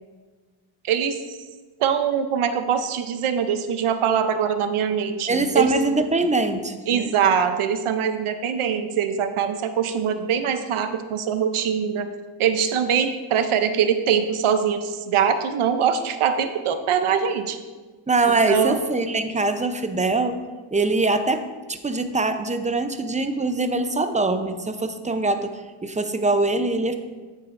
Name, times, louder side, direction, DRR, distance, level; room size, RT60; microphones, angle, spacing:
voice 1, 0.8-1.4 1.8-6.0 6.9-12.1 12.4-17.6 18.5-18.8, right 7 dB, 80° right, 9 dB, 0.7 m, -23 dB
voice 2, 5.3-7.1 18.1-20.4 20.7-26.9, right 2 dB, 15° right, 9 dB, 0.6 m, -23 dB
8.8 x 7.6 x 2.5 m, 1.3 s
cardioid pair, 65°, 50 cm